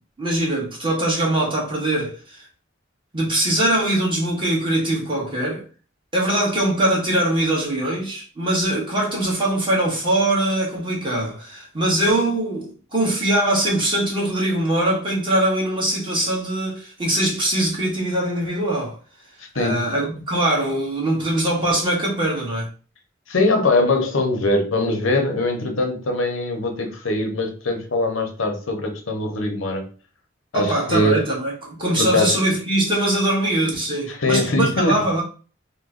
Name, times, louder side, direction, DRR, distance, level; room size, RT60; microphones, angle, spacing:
voice 1, 0.2-2.4 3.1-5.6 6.1-19.0 19.5-22.7 30.5-31.5 31.8-35.2, right 1 dB, 25° right, 1.3 m, -22 dB
voice 2, 19.5-19.9 23.3-29.9 30.5-31.2 31.9-32.4 34.1-35.1, left 2 dB, 90° left, 0.8 m, -22 dB
3.0 x 2.2 x 3.7 m
head